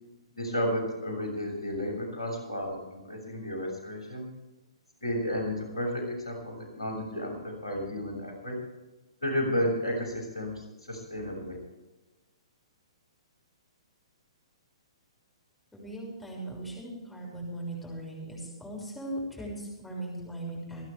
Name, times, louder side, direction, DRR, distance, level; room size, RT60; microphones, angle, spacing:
voice 1, 0.3-4.3 5.0-8.5 9.2-11.6, equal, 75° left, 1 dB, 6.6 m, -32 dB
voice 2, 15.7-20.8, right 1 dB, 5° left, -4 dB, 6.5 m, -38 dB
26.5 x 10.5 x 3.5 m, 1.1 s
figure-of-eight pair, 120°, 3 cm